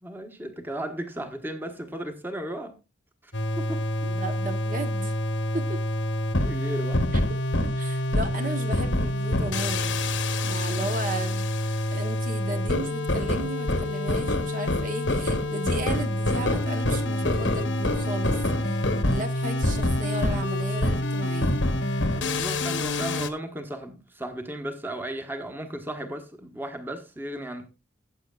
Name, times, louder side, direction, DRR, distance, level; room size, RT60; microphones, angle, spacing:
voice 1, 0.0-2.8 3.2-3.8 6.3-7.0 22.1-27.7, right 1 dB, 10° right, 1.2 m, -35 dB
sound 1, 3.3-23.3, left 1 dB, 90° left, 1.3 m, -26 dB
voice 2, 4.0-5.1 5.5-5.8 7.3-10.0 10.4-11.5 11.9-21.6, right 2 dB, 45° right, 1.1 m, -35 dB
15.0 x 7.9 x 2.4 m
head